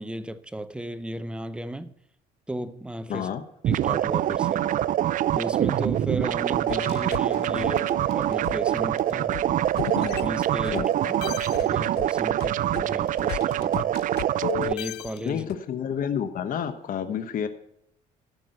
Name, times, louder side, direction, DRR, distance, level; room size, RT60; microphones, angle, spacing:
voice 1, 0.0-1.9 2.5-3.3 3.7-4.7 5.3-9.4 10.0-10.9 11.6-13.9 14.6-15.4, right 1 dB, 5° right, 0.7 m, -35 dB
voice 2, 3.1-3.4 10.7-11.4 15.2-17.5, left 8 dB, 55° left, 1.1 m, -30 dB
sound 1, 3.6-14.7, right 12 dB, 50° right, 0.4 m, -25 dB
sound 2, 6.7-10.9 11.2-15.6, left 17 dB, 75° left, 0.4 m, -36 dB
13.0 x 6.1 x 8.0 m
cardioid pair, 110°, 17 cm